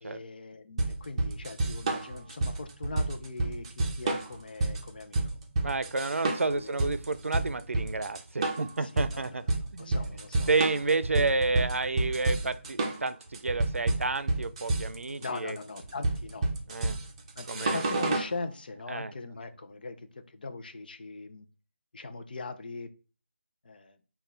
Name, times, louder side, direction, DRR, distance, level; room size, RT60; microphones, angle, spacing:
voice 1, 0.0-5.4 6.2-6.8 8.8-9.5 9.8-10.5 15.2-16.5 17.4-21.5 21.9-22.9 23.6-24.0, left 3 dB, 45° left, 8 dB, 0.6 m, -41 dB
sound 1, 0.8-18.3, right 2 dB, 25° right, 0.7 m, -30 dB
voice 2, 5.6-9.4 9.7-10.2 10.5-15.6 16.7-17.0 17.5-17.8 18.9-19.1, right 3 dB, 80° right, 12 dB, 0.5 m, -30 dB
5.4 x 2.4 x 3.8 m, 0.35 s
figure-of-eight pair, 165°, 7 cm